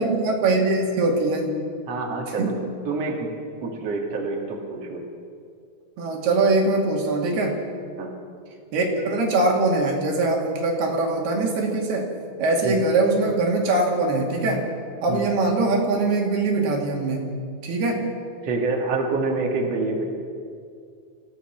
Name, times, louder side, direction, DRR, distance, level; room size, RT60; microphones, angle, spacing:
voice 1, 0.0-1.6 2.4-2.7 6.0-7.6 8.7-12.1 12.4-14.7 15.0-18.1, right 2 dB, 75° right, 0 dB, 4.4 m, -22 dB
voice 2, 1.9-2.5 2.9-3.3 3.6-5.0 8.0-8.1 12.6-12.8 15.1-15.2 18.4-20.1, right 3 dB, 45° right, 0 dB, 3.1 m, -27 dB
26.5 x 16.5 x 6.0 m, 2.3 s
omnidirectional pair, 4.6 m